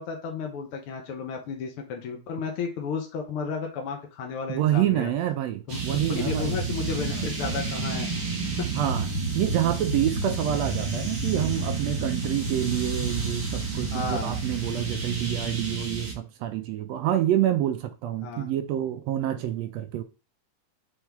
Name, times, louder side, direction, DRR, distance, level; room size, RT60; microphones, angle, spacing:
voice 1, 0.0-5.1 5.7-5.8 6.2-8.1 8.6-8.7 13.9-14.4 18.2-18.5, left 5 dB, 65° left, 1.4 m, -33 dB
voice 2, 4.5-6.6 7.1-7.3 8.7-9.1 9.3-20.0, right 12 dB, 75° right, 1.6 m, -27 dB
sound 1, 5.7-16.1, right 3 dB, 45° right, 2.2 m, -30 dB
7.5 x 3.6 x 3.5 m
omnidirectional pair, 3.4 m